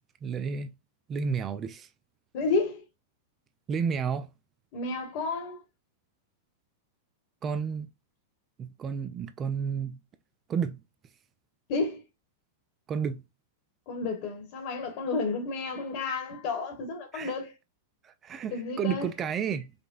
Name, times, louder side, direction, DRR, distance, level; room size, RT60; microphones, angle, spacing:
voice 1, 0.2-0.7 1.1-1.9 3.7-4.3 7.4-7.9 8.6-10.0 10.5-10.8 12.9-13.2 17.1-17.3 18.0-19.7, right 6 dB, 30° right, 0.3 m, -31 dB
voice 2, 2.3-2.8 4.7-5.6 11.7-12.0 13.9-17.5 18.5-19.1, left 3 dB, 50° left, 1.3 m, -31 dB
5.0 x 2.1 x 2.4 m
hypercardioid pair, 105°, 0 cm